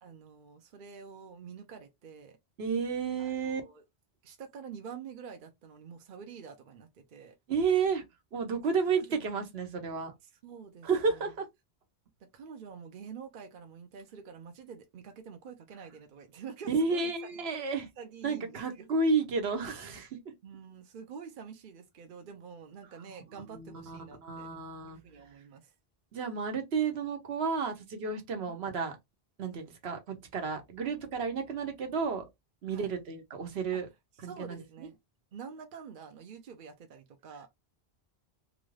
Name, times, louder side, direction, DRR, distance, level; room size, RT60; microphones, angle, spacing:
voice 1, 0.0-2.4 3.2-3.8 4.2-7.4 8.8-9.4 10.4-11.3 12.2-17.1 18.0-18.9 20.4-24.5 24.9-25.7 28.5-28.6 32.7-32.9 33.7-33.8 34.2-35.0 35.3-37.5, right 6 dB, 60° right, 0.7 m, -47 dB
voice 2, 2.6-3.6 7.5-8.0 8.3-10.1 10.8-11.5 16.7-17.9 18.2-20.3 23.5-25.0 26.1-28.9 29.4-32.2 32.6-33.9 34.2-34.9, right 5 dB, 75° right, 1.1 m, -31 dB
2.9 x 2.5 x 3.2 m
omnidirectional pair, 1.1 m